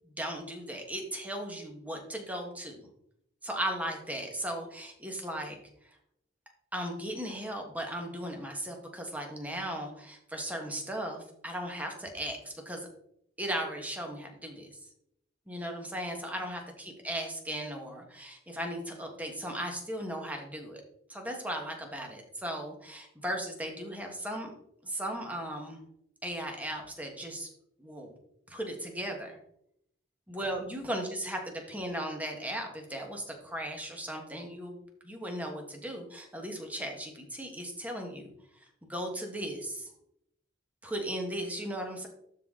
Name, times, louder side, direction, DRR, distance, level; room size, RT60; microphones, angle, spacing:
voice 1, 0.1-2.9 3.4-5.6 6.7-12.9 13.4-14.7 15.5-20.8 21.1-24.5 24.8-25.8 26.2-27.5 27.8-28.1 28.5-29.4 30.3-38.3 38.8-39.9 40.8-42.1, right 1 dB, 10° right, 2 dB, 1.4 m, -37 dB
12.0 x 4.1 x 3.8 m, 0.74 s
head